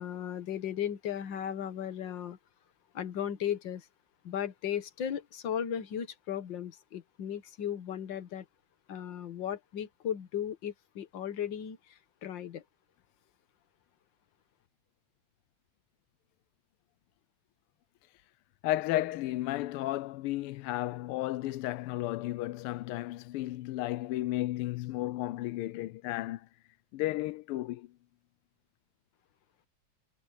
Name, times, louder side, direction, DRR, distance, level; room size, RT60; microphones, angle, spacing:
voice 1, 0.0-2.4 2.9-3.9 4.2-8.5 8.9-12.6, left 9 dB, 60° left, 1.9 m, -36 dB
voice 2, 18.6-26.5 26.9-27.9, left 16 dB, 90° left, 1.5 m, -33 dB
omnidirectional pair, 2.4 m